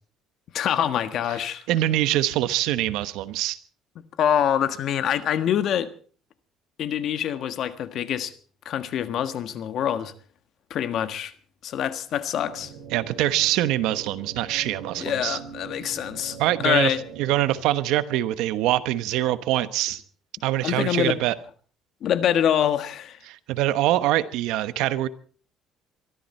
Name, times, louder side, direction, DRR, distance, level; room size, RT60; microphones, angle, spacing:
voice 1, 0.5-1.7 4.2-5.9 6.8-8.3 8.6-10.1 10.7-11.3 11.6-12.7 15.0-16.4 16.6-17.0 20.6-21.2 22.0-23.2, left 9 dB, 60° left, 1.5 m, -25 dB
voice 2, 1.7-3.6 12.9-15.4 16.4-16.9 17.2-20.0 20.4-21.3 23.3-25.1, right 14 dB, 85° right, 1.1 m, -24 dB
sound 1, 12.5-17.6, right 5 dB, 60° right, 5.0 m, -42 dB
23.5 x 13.5 x 4.4 m
cardioid pair, 125°, 0 cm